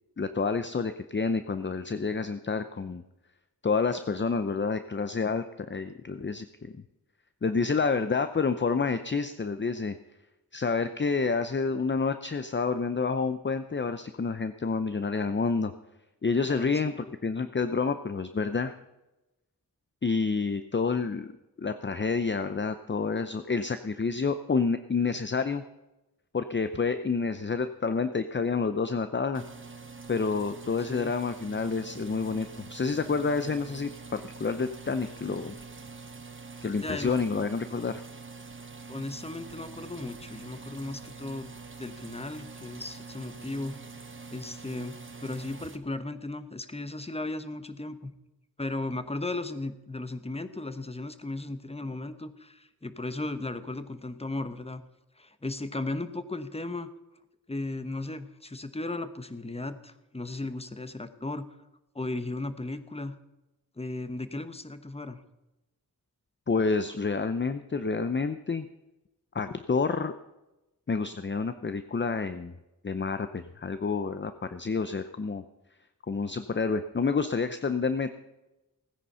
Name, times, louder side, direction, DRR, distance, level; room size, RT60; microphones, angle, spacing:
voice 1, 0.2-3.0 3.6-6.8 7.4-10.0 10.5-15.7 16.2-18.7 20.0-25.6 26.3-29.4 30.1-35.6 36.6-38.0 66.5-68.7 69.3-70.1 70.9-72.5 72.8-75.4 76.1-78.1, left 4 dB, 35° left, 10 dB, 0.7 m, -29 dB
voice 2, 16.5-16.9 30.9-31.1 36.8-37.1 38.9-41.5 41.8-43.8 44.3-48.1 48.6-54.8 55.2-56.9 57.5-61.5 61.9-63.2 63.8-65.2, left 2 dB, 15° left, 11 dB, 1.1 m, -36 dB
sound 1, 29.3-45.8, right 4 dB, 35° right, 1.1 m, -45 dB
17.0 x 9.9 x 5.6 m, 0.98 s
wide cardioid pair, 70°, 35 cm